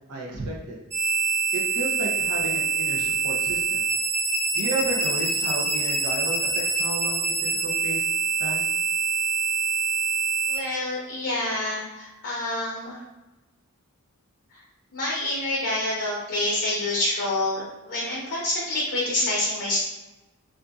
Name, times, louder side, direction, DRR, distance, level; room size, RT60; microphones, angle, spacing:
voice 1, 0.1-0.8 1.5-3.8 4.5-8.0 8.4-8.7, right 2 dB, 85° right, -2 dB, 0.7 m, -32 dB
sound 1, 0.9-10.6, right 4 dB, 50° right, 0.8 m, -25 dB
voice 2, 10.5-13.0 14.5-14.6 14.9-19.8, left 1 dB, 50° left, -5 dB, 0.6 m, -27 dB
2.6 x 2.5 x 2.3 m, 1.1 s
head